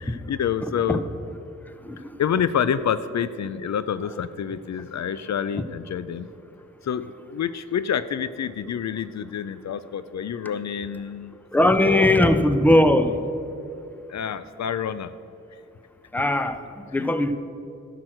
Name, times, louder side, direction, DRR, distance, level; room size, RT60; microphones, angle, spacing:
voice 1, 0.0-1.0 2.0-6.3 6.8-11.3 11.8-12.4 14.1-15.1 17.0-17.1, left 8 dB, 65° left, 14 dB, 0.4 m, -28 dB
voice 2, 11.5-13.2 16.1-17.3, left 1 dB, 5° left, 10 dB, 0.7 m, -19 dB
11.5 x 6.0 x 7.8 m, 2.6 s
cardioid pair, 60°, 30 cm